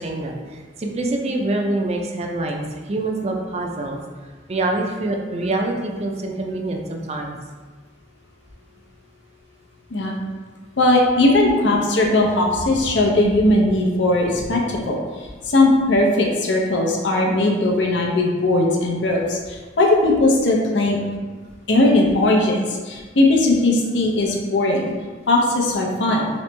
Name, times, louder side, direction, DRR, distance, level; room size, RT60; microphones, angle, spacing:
voice 1, 0.0-4.0 4.5-7.3 11.2-11.7, right 2 dB, 35° right, 1 dB, 0.4 m, -25 dB
voice 2, 10.8-15.0 15.5-21.0 21.7-24.9 25.3-26.3, left 2 dB, 85° left, 0 dB, 0.6 m, -18 dB
3.0 x 3.0 x 3.3 m, 1.4 s
head